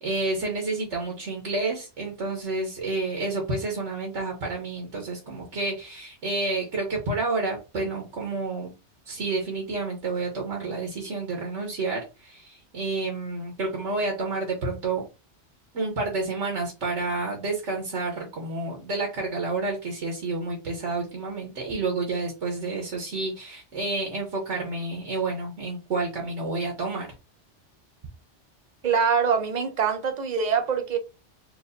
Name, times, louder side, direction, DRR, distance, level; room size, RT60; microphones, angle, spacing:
voice 1, 0.0-8.7 9.1-15.0 15.7-27.1, right 3 dB, 85° right, 1.4 m, -29 dB
voice 2, 28.8-31.0, right 6 dB, 45° right, 0.7 m, -24 dB
4.6 x 2.6 x 2.6 m
omnidirectional pair, 1.2 m